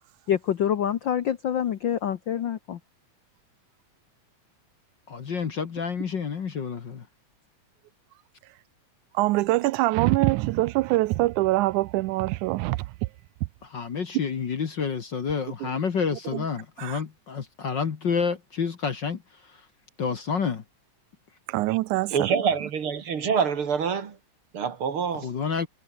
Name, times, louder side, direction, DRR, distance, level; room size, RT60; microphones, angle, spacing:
voice 1, 0.3-2.8, left 9 dB, 70° left, 1.1 m, -26 dB
voice 2, 5.1-7.0 13.6-19.6 20.0-20.6 25.1-25.7, left 6 dB, 45° left, 1.8 m, -29 dB
voice 3, 9.2-12.8 15.6-15.7 16.3-16.4 16.8-17.0 21.5-22.4, right 19 dB, 85° right, 2.0 m, -24 dB
voice 4, 22.1-24.2 24.5-25.3, right 6 dB, 50° right, 2.5 m, -26 dB
omnidirectional pair, 3.5 m